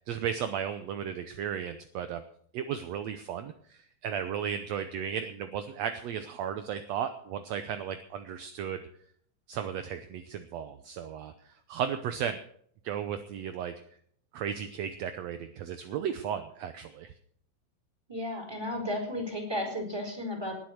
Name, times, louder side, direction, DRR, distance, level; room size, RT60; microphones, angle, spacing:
voice 1, 0.1-2.2 2.5-8.8 9.5-12.4 12.8-13.7 14.3-17.1, right 8 dB, 75° right, 9 dB, 1.6 m, -35 dB
voice 2, 18.1-20.6, left 1 dB, 5° right, 2 dB, 4.1 m, -34 dB
20.0 x 7.7 x 6.5 m, 0.62 s
omnidirectional pair, 3.9 m